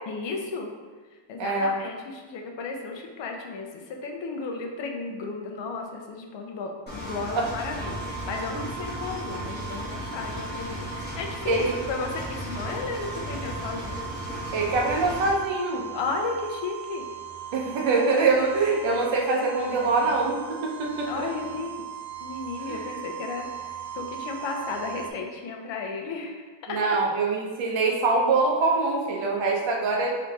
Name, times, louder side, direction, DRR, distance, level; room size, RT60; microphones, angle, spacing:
voice 1, 0.1-0.7 1.3-10.9 11.2-14.0 15.9-17.0 18.8-20.1 21.1-21.7 22.2-26.9, left 4 dB, 65° left, 2 dB, 0.7 m, -34 dB
voice 2, 1.4-1.7 7.4-7.5 8.5-8.7 11.5-11.7 14.5-15.8 17.5-21.3 22.6-22.9 26.7-30.1, right 3 dB, 60° right, -1 dB, 0.8 m, -24 dB
Engine, 6.9-15.3, equal, 20° left, 0.9 m, -35 dB
sound 1, 7.8-25.1, right 10 dB, 35° right, 0.4 m, -40 dB
3.9 x 2.8 x 3.5 m, 1.5 s
cardioid pair, 155°, 50 cm